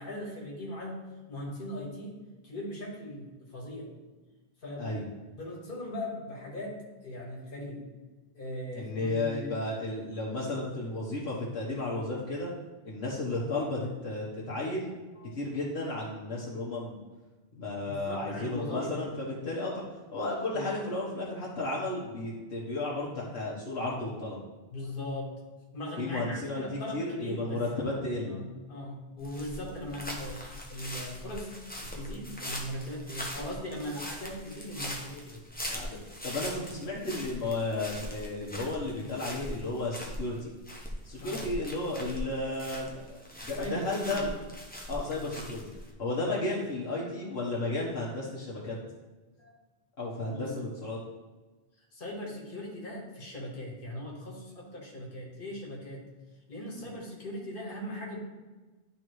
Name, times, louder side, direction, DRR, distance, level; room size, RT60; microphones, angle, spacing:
voice 1, 0.0-2.2 2.4-3.9 4.6-4.9 5.3-7.8 8.3-9.6 15.2-15.3 17.9-18.9 20.5-20.7 24.7-25.3 25.7-27.9 28.3-31.5 31.8-35.4 41.2-41.5 43.6-44.3 49.4-49.5 50.3-50.5 51.9-56.0 56.5-58.2, left 1 dB, 55° left, -2 dB, 1.7 m, -39 dB
voice 2, 8.7-12.5 12.8-14.9 15.3-17.0 17.5-19.8 20.1-24.4 26.0-26.6 26.9-28.4 35.7-36.0 36.2-40.5 41.0-43.0 43.4-44.3 44.9-45.6 46.0-48.7 50.0-51.0, left 2 dB, 80° left, -5 dB, 1.4 m, -33 dB
sound 1, 29.2-45.9, equal, 10° left, 0.9 m, -41 dB
11.5 x 3.9 x 3.1 m, 1.2 s
omnidirectional pair, 1.1 m